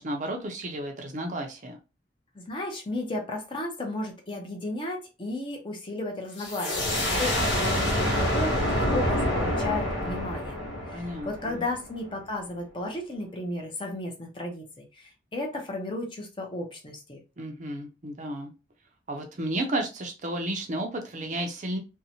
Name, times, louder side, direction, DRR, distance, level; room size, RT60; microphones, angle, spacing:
voice 1, 0.0-1.8 10.9-11.6 17.4-18.5 19.1-21.8, right 1 dB, 40° right, 0.5 m, -32 dB
voice 2, 2.3-17.2, left 2 dB, 25° left, 0.6 m, -34 dB
sound 1, 6.4-11.9, left 1 dB, 85° left, 1.1 m, -27 dB
2.6 x 2.1 x 2.7 m
head